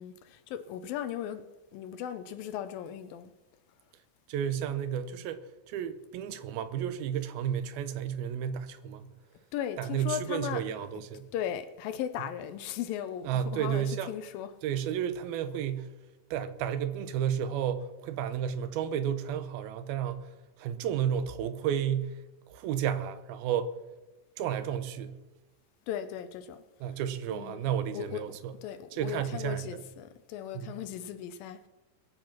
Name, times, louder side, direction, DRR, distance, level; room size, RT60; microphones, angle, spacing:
voice 1, 0.0-1.5 1.7-3.3 9.5-10.6 11.3-14.5 25.9-26.6 27.3-31.7, left 10 dB, 80° left, 2.4 m, -37 dB
voice 2, 4.3-9.1 9.8-11.3 13.2-14.1 14.6-15.9 16.3-20.3 20.6-22.2 22.5-23.7 24.4-25.2 26.8-28.5 28.9-29.8 30.5-30.8, right 9 dB, 90° right, 2.8 m, -32 dB
21.5 x 8.0 x 5.9 m
omnidirectional pair, 4.2 m